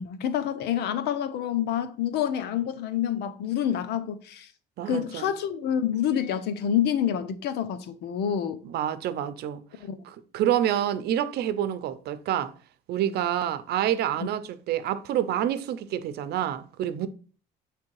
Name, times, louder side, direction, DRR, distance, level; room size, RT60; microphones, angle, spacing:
voice 1, 0.0-4.5 4.9-8.6 9.8-10.0 14.2-14.3, left 9 dB, 80° left, 0.8 m, -27 dB
voice 2, 4.8-5.3 8.6-9.6 10.0-12.5 12.9-17.1, right 11 dB, 70° right, 0.7 m, -28 dB
7.5 x 3.4 x 4.7 m
cardioid pair, 110°, 17 cm